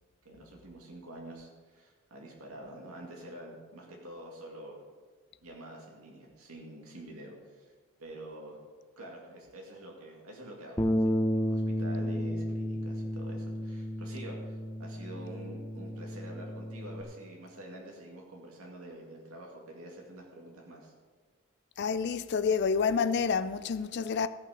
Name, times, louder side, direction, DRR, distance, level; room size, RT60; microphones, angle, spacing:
voice 1, 0.2-4.8 5.4-7.7 8.0-8.6 9.0-11.2 11.5-20.9, right 1 dB, 85° right, 2.2 m, -47 dB
Bass guitar, 10.8-17.0, equal, 15° left, 0.8 m, -32 dB
voice 2, 21.8-24.3, left 5 dB, 50° left, 0.4 m, -28 dB
14.0 x 6.1 x 6.5 m
head